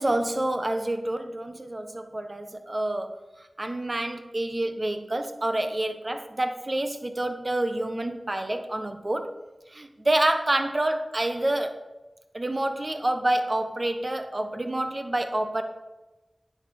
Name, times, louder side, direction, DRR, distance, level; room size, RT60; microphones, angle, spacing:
voice 1, 0.0-9.3 9.7-11.8 12.3-15.6, right 1 dB, 40° right, 7 dB, 1.2 m, -28 dB
9.6 x 6.7 x 5.4 m, 1.1 s
cardioid pair, 45°, 0 cm